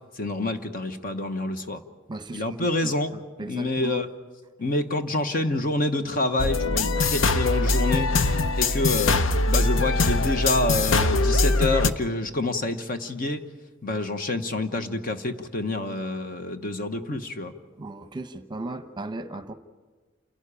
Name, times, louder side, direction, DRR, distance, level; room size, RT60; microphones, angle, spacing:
voice 1, 0.1-1.8 2.3-3.1 3.5-4.1 4.6-13.4 13.8-17.5, left 2 dB, 45° left, 8 dB, 1.1 m, -27 dB
voice 2, 2.1-4.1 17.8-19.5, right 2 dB, 20° right, 9 dB, 0.9 m, -36 dB
sound 1, 6.4-11.9, left 3 dB, 70° left, 0.8 m, -22 dB
28.5 x 12.0 x 9.9 m, 1.4 s
head